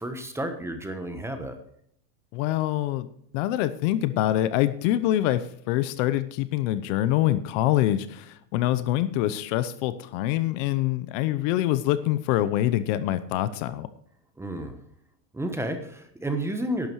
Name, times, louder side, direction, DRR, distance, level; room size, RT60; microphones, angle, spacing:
voice 1, 0.0-1.6 14.4-14.8 15.3-16.9, right 1 dB, 5° right, 7 dB, 1.1 m, -31 dB
voice 2, 2.3-3.1 3.3-13.9, left 13 dB, 50° left, 14 dB, 0.8 m, -25 dB
11.5 x 8.8 x 4.7 m, 0.68 s
supercardioid pair, 150°, 47 cm